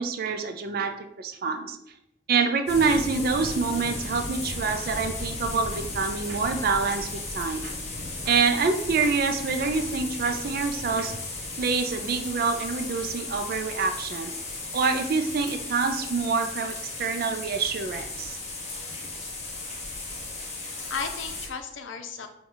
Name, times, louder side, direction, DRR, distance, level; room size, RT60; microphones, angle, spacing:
voice 1, 0.0-1.8 2.3-7.7 8.3-11.1 11.6-14.3 14.7-18.4, right 4 dB, 50° right, 7 dB, 0.4 m, -26 dB
sound 1, 2.7-21.5, left 2 dB, 35° left, 1.1 m, -35 dB
voice 2, 20.5-22.3, left 5 dB, 85° left, 6 dB, 0.6 m, -35 dB
6.2 x 2.3 x 3.7 m, 0.78 s
head